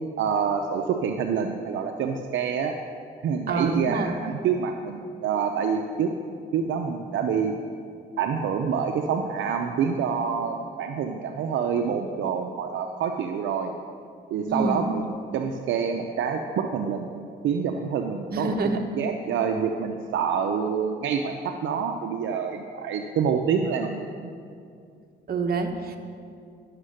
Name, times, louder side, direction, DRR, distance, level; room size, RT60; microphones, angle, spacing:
voice 1, 0.2-2.8 3.2-6.1 6.5-7.5 8.2-13.7 14.3-15.0 15.3-17.1 17.4-18.6 19.0-24.3, right 6 dB, 70° right, 4 dB, 0.6 m, -27 dB
voice 2, 3.5-4.1 14.5-14.9 18.3-18.8 25.3-26.0, right 3 dB, 50° right, 4 dB, 1.2 m, -27 dB
11.5 x 6.5 x 6.5 m, 2.4 s
cardioid pair, 90°, 20 cm